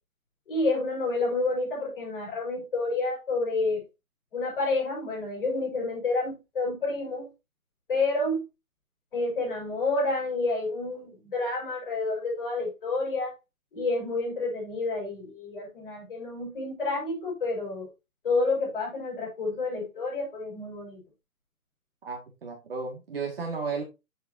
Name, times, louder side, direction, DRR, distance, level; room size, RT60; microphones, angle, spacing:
voice 1, 0.5-3.8 4.3-7.3 7.9-8.4 9.1-13.3 13.7-17.9 18.2-21.0, left 3 dB, 35° left, 6.1 m, -29 dB
voice 2, 22.0-23.8, right 4 dB, 40° right, 2.2 m, -34 dB
8.5 x 7.8 x 2.8 m
hypercardioid pair, 180°, 44 cm